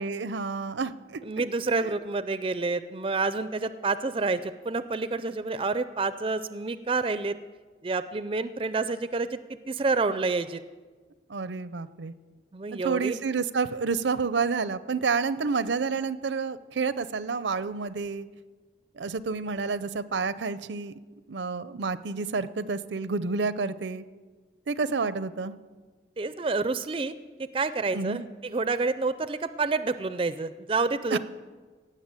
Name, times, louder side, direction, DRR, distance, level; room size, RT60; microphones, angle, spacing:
voice 1, 0.0-1.2 1.8-1.9 11.3-12.1 12.7-18.3 19.0-20.9 21.3-24.0 24.7-25.5 27.9-28.2 31.1-31.2, right 4 dB, 80° right, 15 dB, 0.6 m, -29 dB
voice 2, 1.2-7.4 7.8-9.4 9.7-10.6 12.5-13.2 26.2-27.1 27.4-31.2, right 3 dB, 30° right, 13 dB, 0.4 m, -28 dB
17.5 x 6.9 x 7.6 m, 1.4 s
head